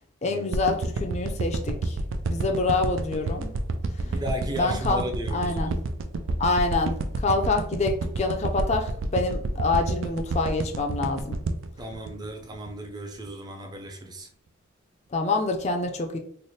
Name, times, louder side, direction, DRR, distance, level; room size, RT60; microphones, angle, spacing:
voice 1, 0.2-2.0 2.3-3.5 4.6-5.7 6.4-11.4 15.1-16.2, left 3 dB, 35° left, 3 dB, 0.4 m, -26 dB
sound 1, 0.5-12.8 13.3-13.4, right 2 dB, 85° right, 0.4 m, -29 dB
voice 2, 4.0-5.8 11.8-14.3, equal, 20° right, 3 dB, 0.5 m, -35 dB
3.2 x 2.1 x 4.1 m, 0.64 s
head